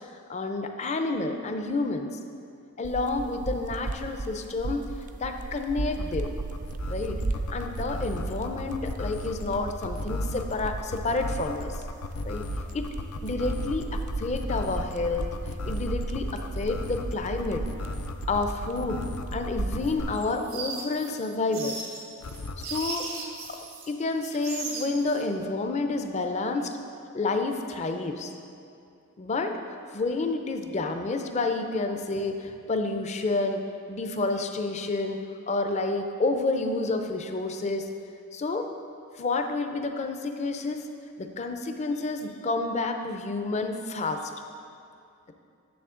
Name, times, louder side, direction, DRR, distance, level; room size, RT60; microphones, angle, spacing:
voice 1, 0.3-2.2 2.8-4.9 5.2-6.3 6.9-7.2 7.5-11.8 12.2-12.4 12.7-12.9 13.2-15.3 15.7-17.6 18.3-19.0 19.3-21.8 22.6-26.7 27.1-28.3 29.2-29.6 29.9-35.2 35.5-37.9 38.3-38.7 39.2-40.9 41.2-44.3, left 3 dB, 30° left, 5 dB, 0.5 m, -29 dB
sound 1, 2.8-20.0, right 2 dB, 35° right, 0.3 m, -35 dB
sound 2, 6.0-20.4 22.2-22.8, left 3 dB, 85° left, 0.5 m, -36 dB
sound 3, 19.8-23.9 24.2-25.2, right 3 dB, 85° right, 1.2 m, -37 dB
9.4 x 7.2 x 3.7 m, 2.5 s
head